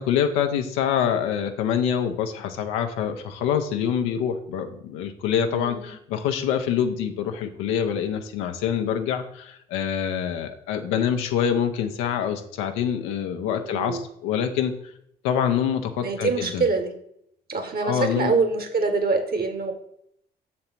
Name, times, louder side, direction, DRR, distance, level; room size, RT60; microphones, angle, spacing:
voice 1, 0.0-14.7 15.2-16.7 17.8-18.3, left 8 dB, 85° left, 6 dB, 0.8 m, -25 dB
voice 2, 5.5-5.9 13.5-14.0 16.0-16.9 17.5-19.7, right 4 dB, 50° right, 7 dB, 1.5 m, -25 dB
6.8 x 4.3 x 5.8 m, 0.72 s
hypercardioid pair, 50°, 20 cm